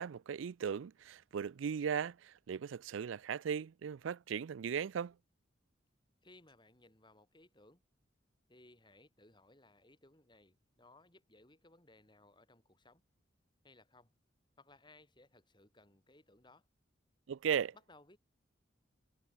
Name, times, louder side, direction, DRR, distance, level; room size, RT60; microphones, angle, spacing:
voice 1, 0.0-5.2 17.3-17.7, right 7 dB, 85° right, 0.4 m, -37 dB
voice 2, 6.2-7.8 8.5-13.0 13.6-14.1 14.6-16.7 17.9-18.2, left 2 dB, 25° left, 5.9 m, -63 dB
head